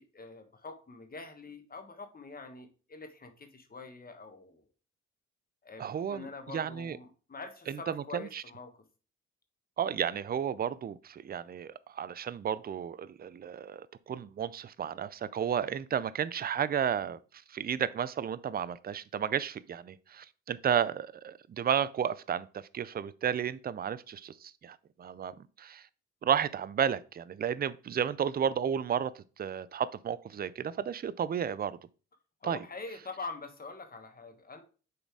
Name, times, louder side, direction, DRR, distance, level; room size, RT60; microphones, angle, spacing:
voice 1, 0.0-4.6 5.6-8.8 32.4-34.6, left 3 dB, 30° left, 1.4 m, -45 dB
voice 2, 5.8-7.0 7.7-8.4 9.8-17.2 17.5-25.8 26.2-31.8 32.4-32.6, right 8 dB, 30° right, 0.5 m, -33 dB
6.7 x 4.2 x 4.7 m
cardioid pair, 90°, 30 cm